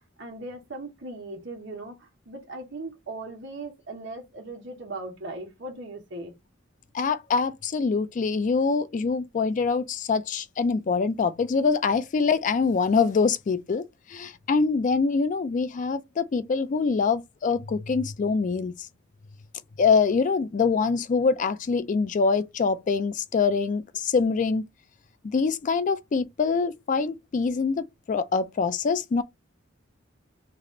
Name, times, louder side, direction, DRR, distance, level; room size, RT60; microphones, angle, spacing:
voice 1, 0.2-6.3, right 2 dB, 65° right, 1.2 m, -38 dB
voice 2, 6.9-13.8 14.1-18.9 19.8-24.7 25.2-29.2, left 5 dB, 40° left, 0.3 m, -24 dB
3.3 x 2.5 x 3.7 m
head